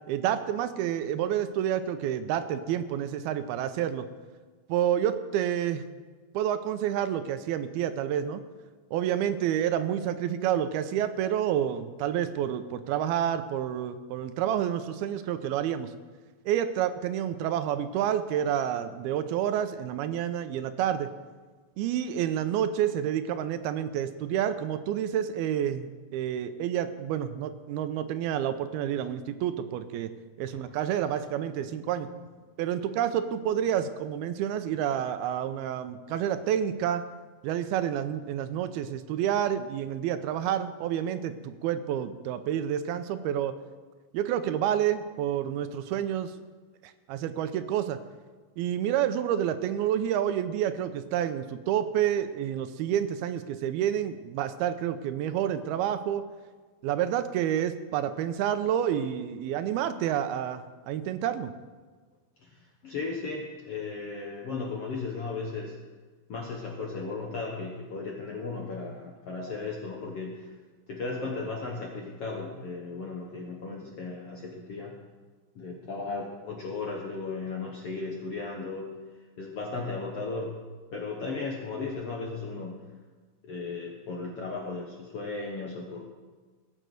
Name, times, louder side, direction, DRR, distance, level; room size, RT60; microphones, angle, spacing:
voice 1, 0.1-4.1 4.7-5.8 6.3-8.4 8.9-15.9 16.5-21.1 21.8-30.1 30.4-32.1 32.6-37.0 37.4-43.6 44.1-46.3 46.8-48.0 48.6-56.3 56.8-61.5, right 10 dB, 85° right, 11 dB, 2.5 m, -29 dB
voice 2, 62.4-65.7 66.3-70.5 70.9-75.0 75.5-78.9 79.4-80.6 80.9-82.8 83.5-86.1, left 3 dB, 65° left, -1 dB, 1.5 m, -36 dB
18.5 x 6.7 x 7.7 m, 1.4 s
omnidirectional pair, 4.6 m